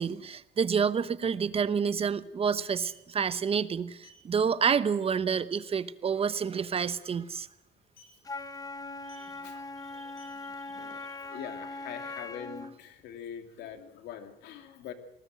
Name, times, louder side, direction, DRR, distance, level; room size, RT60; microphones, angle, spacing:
voice 1, 0.0-7.5 9.2-9.3 9.9-10.1 10.7-10.8 11.3-11.4, right 6 dB, 35° right, 14 dB, 1.0 m, -29 dB
sound 1, 2.8-3.0 4.0-4.2 4.7-4.8 5.2-5.3 5.5-5.8 6.6-7.0 7.9-8.2 9.0-9.3 10.0-11.3, left 4 dB, 55° left, 7.6 m, -55 dB
Wind instrument woodwind instrument, 8.2-12.8, left 3 dB, 20° left, 1.2 m, -40 dB
voice 2, 11.0-14.9, left 8 dB, 80° left, 7 dB, 2.7 m, -43 dB
21.0 x 19.5 x 7.7 m, 0.84 s
cardioid pair, 110°, 17 cm